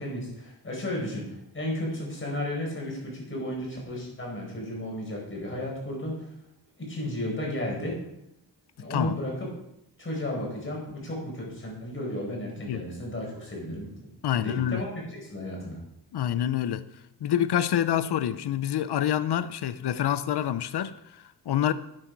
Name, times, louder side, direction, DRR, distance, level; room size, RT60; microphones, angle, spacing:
voice 1, 0.0-6.2 6.8-8.0 8.8-9.5 10.0-13.9 14.3-15.8, left 1 dB, 30° left, 4.9 m, -33 dB
voice 2, 14.2-14.8 16.1-16.8 17.2-21.7, left 10 dB, 65° left, 0.7 m, -27 dB
11.5 x 8.9 x 4.6 m
wide cardioid pair, 125°, 43 cm